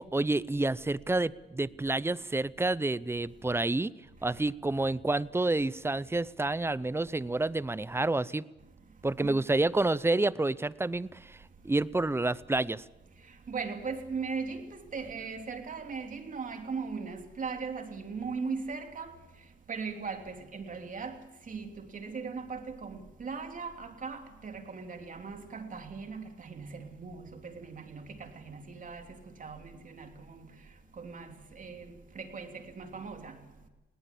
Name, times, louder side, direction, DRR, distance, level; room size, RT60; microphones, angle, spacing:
voice 1, 0.0-3.9 4.2-8.4 9.0-11.4 11.6-12.8, right 2 dB, 10° right, 0.6 m, -29 dB
voice 2, 13.5-19.1 19.7-21.2 21.5-29.1 29.4-30.4 31.0-31.8 32.1-33.4, right 5 dB, 40° right, 3.1 m, -39 dB
19.5 x 19.0 x 8.5 m
cardioid pair, 90°, 20 cm